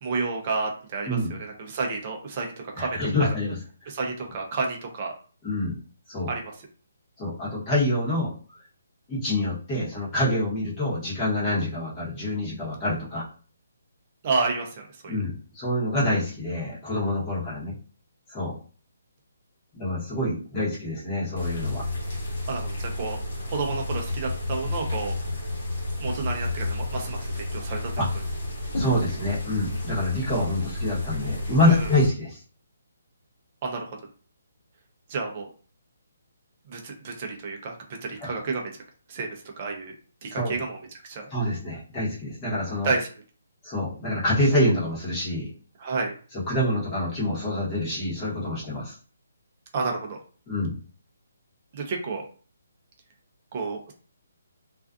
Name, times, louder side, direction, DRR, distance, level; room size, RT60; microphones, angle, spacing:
voice 1, 0.0-3.3 3.9-5.1 6.3-6.5 14.2-15.2 22.5-23.2 23.5-25.2 26.0-28.2 31.6-31.9 33.6-33.9 35.1-35.5 36.7-38.7 39.1-39.3 39.6-39.9 40.2-40.8 41.0-41.3 42.8-43.1 45.8-46.1 49.7-50.2 51.7-52.3 53.5-53.9, right 4 dB, 30° right, 1 dB, 0.6 m, -30 dB
voice 2, 1.1-1.4 2.8-3.6 5.4-5.8 6.1-6.3 7.2-8.3 9.1-13.2 15.1-17.8 18.3-18.6 19.7-21.8 28.0-28.1 28.7-32.4 38.2-38.3 40.3-40.6 41.3-42.9 43.6-45.5 46.5-48.9 50.5-50.8, left 1 dB, 15° left, -7 dB, 1.0 m, -26 dB
sound 1, 21.4-32.1, left 2 dB, 45° left, 1.2 m, -31 dB
2.4 x 2.3 x 2.3 m, 0.39 s
hypercardioid pair, 170°, 0 cm